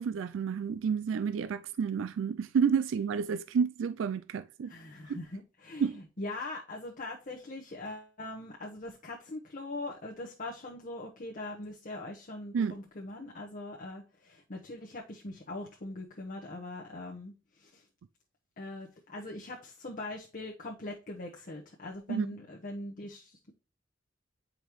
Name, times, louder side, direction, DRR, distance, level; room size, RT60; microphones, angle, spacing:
voice 1, 0.0-4.7 5.1-5.2 5.8-6.0 12.5-12.8 22.1-22.3, right 6 dB, 75° right, 0.3 m, -30 dB
voice 2, 4.6-17.9 18.6-23.5, left 2 dB, 45° left, 1.0 m, -42 dB
9.0 x 5.2 x 3.0 m
head